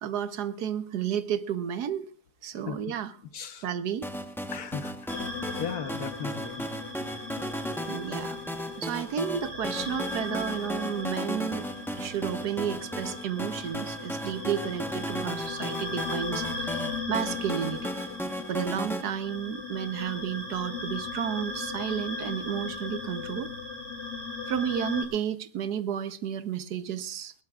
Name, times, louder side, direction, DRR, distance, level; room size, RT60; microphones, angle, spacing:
voice 1, 0.0-2.1 2.4-3.1 3.6-4.1 7.9-8.4 8.8-11.7 12.0-17.9 18.5-23.5 24.5-27.3, right 9 dB, 80° right, 12 dB, 1.5 m, -32 dB
voice 2, 3.3-3.7 4.5-4.9 5.6-6.7, left 7 dB, 70° left, 10 dB, 1.6 m, -36 dB
sound 1, 4.0-19.0, equal, ahead, 0.8 m, -35 dB
sound 2, 5.1-25.0, left 3 dB, 40° left, 3.3 m, -37 dB
21.0 x 17.5 x 2.4 m, 0.38 s
omnidirectional pair, 1.7 m